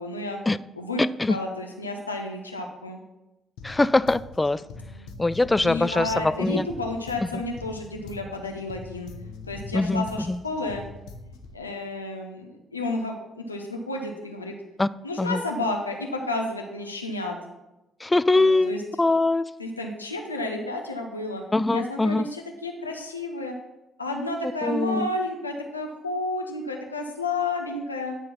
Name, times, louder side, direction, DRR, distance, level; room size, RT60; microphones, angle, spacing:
voice 1, 0.0-0.4 0.7-1.0 1.3-3.0 5.6-9.1 9.5-10.8 11.2-14.6 15.0-17.4 18.3-18.8 19.6-21.4 21.7-23.6 24.0-28.2, left 2 dB, 90° left, 2 dB, 0.6 m, -31 dB
voice 2, 1.0-1.4 3.6-4.6 5.2-6.7 7.3-7.4 9.7-10.4 14.8-14.9 15.2-15.4 18.0-19.4 21.5-22.3 24.6-25.1, left 2 dB, 20° left, 17 dB, 0.3 m, -22 dB
sound 1, 3.6-11.6, left 4 dB, 65° left, 0.9 m, -42 dB
10.0 x 4.5 x 5.7 m, 0.98 s
figure-of-eight pair, 45°, 0 cm